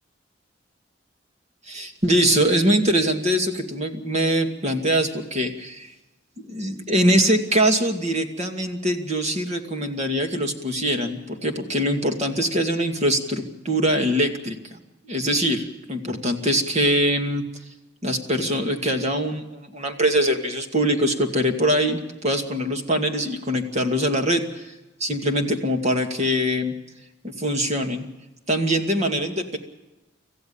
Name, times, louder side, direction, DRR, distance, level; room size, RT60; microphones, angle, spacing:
voice 1, 1.7-5.9 6.4-14.8 15.0-17.4 18.0-24.7 25.0-26.8 27.2-28.1 28.5-29.6, equal, 35° right, 4 dB, 2.3 m, -23 dB
26.5 x 15.0 x 7.1 m, 1.0 s
head